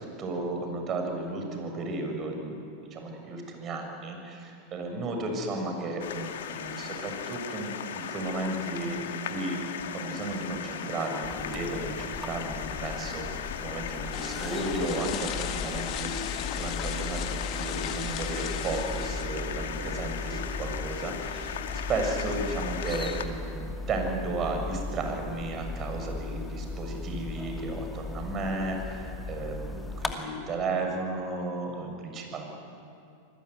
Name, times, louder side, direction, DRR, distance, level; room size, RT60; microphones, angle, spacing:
voice 1, 0.0-9.7 9.9-32.5, right 2 dB, 35° right, 3 dB, 6.9 m, -34 dB
sound 1, 6.0-23.3, left 8 dB, 70° left, 2.1 m, -37 dB
sound 2, 11.2-30.1, left 3 dB, 10° left, 2.6 m, -38 dB
sound 3, 14.1-19.3, left 11 dB, 45° left, 1.8 m, -37 dB
26.5 x 20.5 x 9.7 m, 2.6 s
hypercardioid pair, 95°, 0 cm